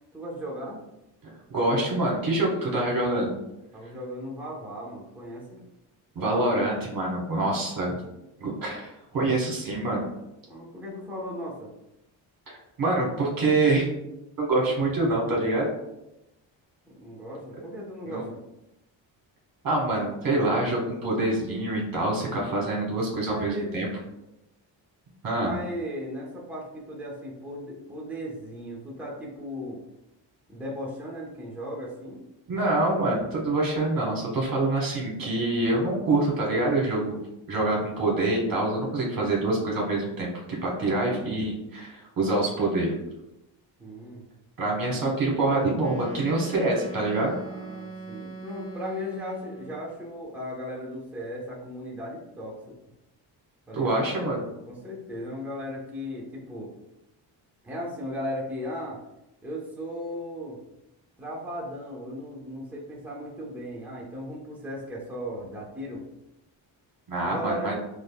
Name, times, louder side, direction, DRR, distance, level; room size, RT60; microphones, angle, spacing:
voice 1, 0.1-0.8 3.7-5.6 10.5-11.7 16.9-18.4 23.2-23.7 25.3-29.8 30.5-32.2 40.8-41.3 43.8-44.2 47.5-52.8 53.7-54.1 54.7-56.7 57.6-59.0 59.4-60.6 61.2-66.0 67.2-67.7, equal, 5° right, -4 dB, 0.9 m, -36 dB
voice 2, 1.2-3.3 6.1-7.9 8.4-10.1 12.5-13.9 14.4-15.7 18.1-18.2 19.6-23.9 25.2-25.5 32.5-37.1 37.5-42.9 44.6-47.3 53.7-54.5 67.1-67.8, right 2 dB, 45° right, -2 dB, 1.2 m, -26 dB
Wind instrument woodwind instrument, 45.8-49.9, right 3 dB, 30° left, 0.8 m, -41 dB
4.8 x 2.2 x 2.2 m, 0.91 s
cardioid pair, 65°, 47 cm